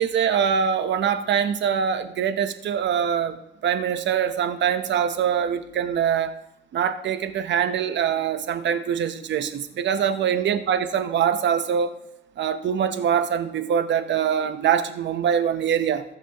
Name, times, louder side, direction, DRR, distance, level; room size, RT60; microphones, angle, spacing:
voice 1, 0.0-3.4 3.6-6.4 6.7-11.9 12.4-16.0, right 8 dB, 65° right, 9 dB, 0.9 m, -23 dB
18.0 x 6.0 x 3.0 m, 0.85 s
cardioid pair, 90°, 20 cm